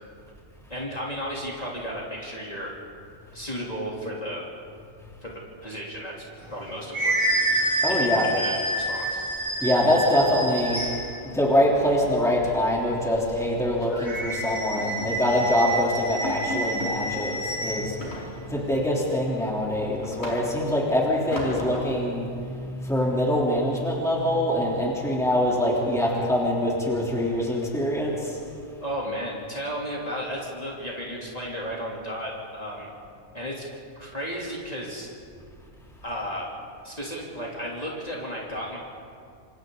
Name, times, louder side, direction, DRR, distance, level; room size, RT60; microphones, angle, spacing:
voice 1, 0.7-2.7 3.3-4.5 5.2-6.2 6.5-7.2 7.9-9.2 28.8-32.9 33.3-33.6 34.0-35.1 36.0-36.5 36.8-38.8, equal, 30° left, -4 dB, 3.3 m, -34 dB
sound 1, 6.4-11.2 13.9-17.9, right 1 dB, 20° right, 4.7 m, -28 dB
voice 2, 7.8-8.3 9.6-10.8 11.2-18.0 18.5-28.3, left 1 dB, ahead, -4 dB, 3.4 m, -24 dB
sound 2, 9.1-9.9 10.2-10.4 10.7-10.9 11.2-11.3 11.7-13.3 13.8-14.1 14.5-15.5 15.8-15.9 16.2-17.0 18.0-18.7 19.2-20.8 21.3-22.1, left 1 dB, 55° left, 5.5 m, -37 dB
28.0 x 27.0 x 4.0 m, 2.4 s
omnidirectional pair, 1.4 m